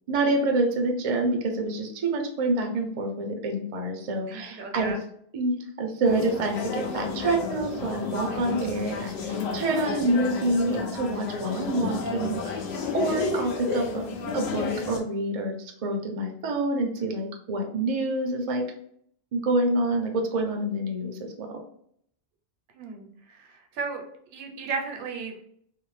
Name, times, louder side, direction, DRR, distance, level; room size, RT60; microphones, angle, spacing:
voice 1, 0.1-5.0 5.3-12.7 12.9-14.0 14.3-18.7 19.3-21.6, right 2 dB, 50° right, 3 dB, 0.4 m, -27 dB
voice 2, 4.3-5.0 17.0-17.2 22.7-25.3, right 4 dB, 70° right, 3 dB, 0.8 m, -35 dB
sound 1, 6.0-15.0, left 4 dB, 75° left, 0.8 m, -31 dB
2.6 x 2.0 x 3.1 m, 0.65 s
omnidirectional pair, 1.1 m